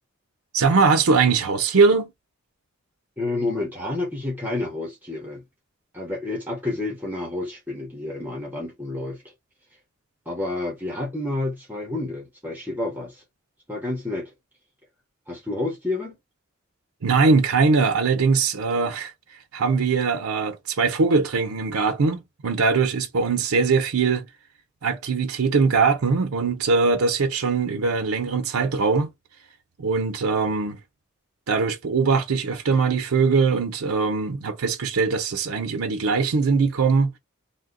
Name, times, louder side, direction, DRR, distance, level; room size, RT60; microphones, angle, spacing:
voice 1, 0.5-2.1 17.0-19.1 19.5-24.3 24.8-29.1 29.8-30.8 31.5-37.1, right 4 dB, 85° right, 0.6 m, -21 dB
voice 2, 3.2-5.4 5.9-9.2 10.3-13.2 13.7-14.3 15.3-16.2, left 2 dB, 10° right, 0.9 m, -29 dB
2.8 x 2.2 x 3.7 m
head